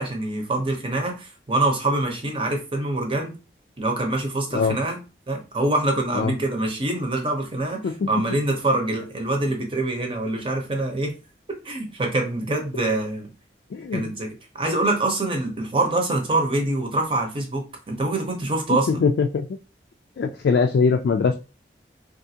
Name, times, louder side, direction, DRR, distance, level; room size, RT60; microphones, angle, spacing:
voice 1, 0.0-3.3 3.8-5.0 5.3-11.1 11.6-13.3 13.9-19.0, right 2 dB, 30° right, 2 dB, 0.7 m, -25 dB
voice 2, 13.7-14.1 18.9-19.5 20.2-21.4, left 5 dB, 75° left, 4 dB, 0.3 m, -21 dB
3.6 x 2.5 x 2.8 m, 0.31 s
head